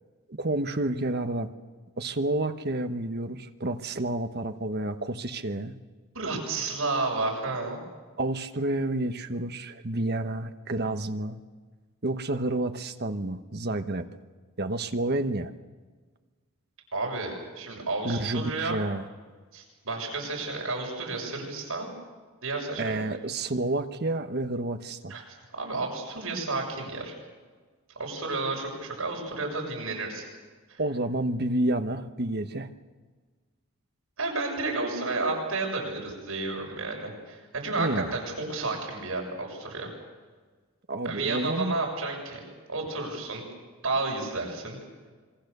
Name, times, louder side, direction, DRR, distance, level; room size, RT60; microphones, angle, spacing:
voice 1, 0.3-1.5 2.0-5.8 8.2-11.4 12.0-14.0 14.6-15.5 18.0-19.0 22.8-25.1 30.8-32.7 37.8-38.1 40.9-41.8, right 2 dB, 50° right, 8 dB, 1.1 m, -29 dB
voice 2, 6.1-7.8 16.9-18.8 19.5-21.9 22.4-23.0 25.1-25.2 25.5-27.1 28.0-30.2 30.7-30.8 34.2-39.9 41.0-43.5 43.8-44.8, right 3 dB, 75° right, 0 dB, 6.9 m, -31 dB
26.5 x 23.0 x 6.8 m, 1.4 s
head